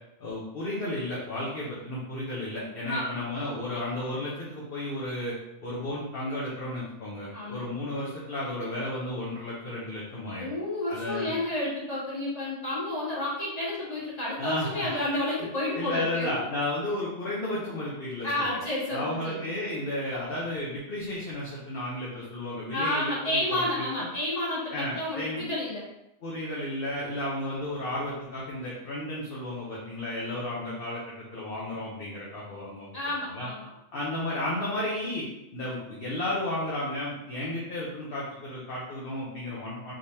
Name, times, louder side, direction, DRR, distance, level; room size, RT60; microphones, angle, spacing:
voice 1, 0.2-5.4 5.6-10.5 10.9-11.3 14.4-14.9 15.4-15.5 15.7-18.6 18.9-24.1 24.7-25.5 26.2-33.0 33.3-33.5 33.9-35.3 35.5-39.9, left 1 dB, 55° left, -6 dB, 1.0 m, -33 dB
voice 2, 7.3-7.6 10.4-16.3 18.2-19.5 22.7-25.8 32.9-33.7, left 1 dB, 30° left, -8 dB, 1.6 m, -30 dB
3.7 x 3.2 x 2.8 m, 0.89 s
omnidirectional pair, 1.2 m